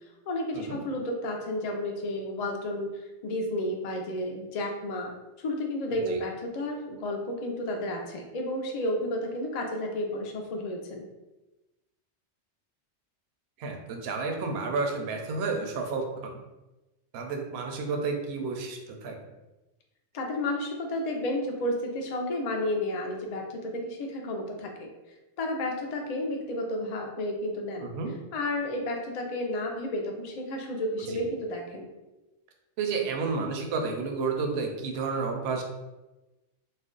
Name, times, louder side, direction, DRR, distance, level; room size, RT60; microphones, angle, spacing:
voice 1, 0.3-2.9 3.2-5.1 5.4-11.1 20.1-24.9 25.4-27.9 28.3-31.9, left 1 dB, 60° left, 2 dB, 0.4 m, -32 dB
voice 2, 13.6-16.3 17.1-19.2 27.8-28.1 31.1-31.2 32.8-35.6, right 4 dB, 65° right, 2 dB, 0.7 m, -31 dB
2.5 x 2.1 x 3.6 m, 1.1 s
omnidirectional pair, 1.2 m